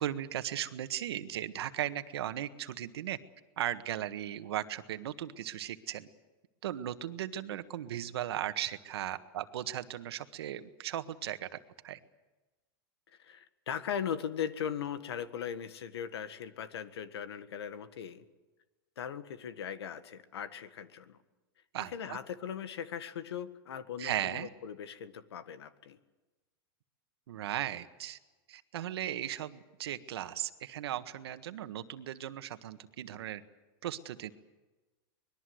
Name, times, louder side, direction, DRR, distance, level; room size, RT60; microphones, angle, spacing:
voice 1, 0.0-3.2 3.6-6.1 6.6-11.6 11.8-12.0 21.7-22.2 24.0-24.5 27.3-28.2 28.5-33.4 33.8-34.3, right 11 dB, 80° right, 10 dB, 1.6 m, -37 dB
voice 2, 13.2-18.2 19.0-21.2 21.9-26.0, left 8 dB, 90° left, 12 dB, 1.7 m, -39 dB
25.0 x 21.0 x 7.9 m, 1.2 s
supercardioid pair, 140°, 13 cm